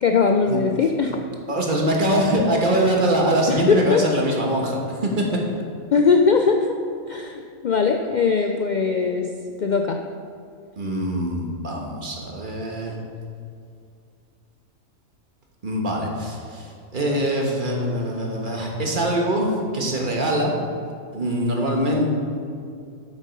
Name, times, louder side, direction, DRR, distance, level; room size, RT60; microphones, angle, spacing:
voice 1, 0.0-1.3 3.5-4.0 5.9-6.8 7.1-9.3 9.6-10.0, left 5 dB, 80° left, 4 dB, 0.4 m, -20 dB
voice 2, 1.5-5.3 10.8-13.0 15.6-20.6 21.1-22.1, right 1 dB, 40° right, 0 dB, 1.4 m, -23 dB
8.5 x 7.5 x 5.2 m, 2.3 s
omnidirectional pair, 1.4 m